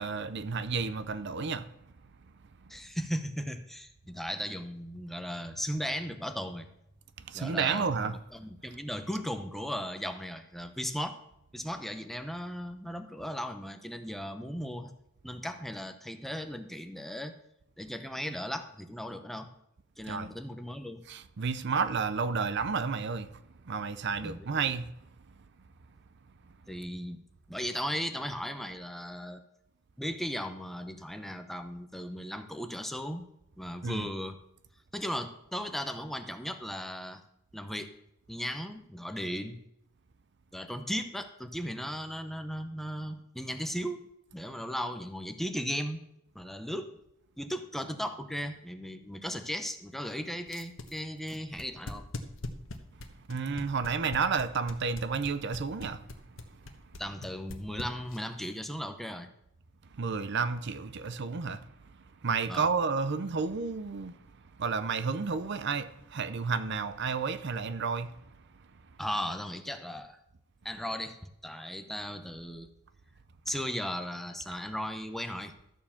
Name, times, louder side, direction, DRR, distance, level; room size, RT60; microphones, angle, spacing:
voice 1, 0.0-1.7 7.3-8.1 20.1-20.3 21.1-24.9 33.8-34.1 53.3-56.0 59.9-61.7 62.2-64.1 64.6-68.1, right 5 dB, 60° right, 0.6 m, -31 dB
voice 2, 2.7-6.7 7.3-11.2 11.5-14.9 15.2-17.3 17.8-19.5 20.0-21.0 24.2-24.5 26.7-27.2 27.5-29.4 30.0-33.2 33.6-34.4 34.9-37.2 37.5-37.9 38.3-39.6 40.5-44.0 44.3-46.1 46.3-47.0 47.4-52.0 57.0-59.3 62.5-62.7 69.0-70.2 70.6-72.7 73.5-75.5, equal, ahead, 0.7 m, -36 dB
sound 1, 50.5-58.4, left 2 dB, 80° left, 1.1 m, -41 dB
13.0 x 4.7 x 7.1 m
head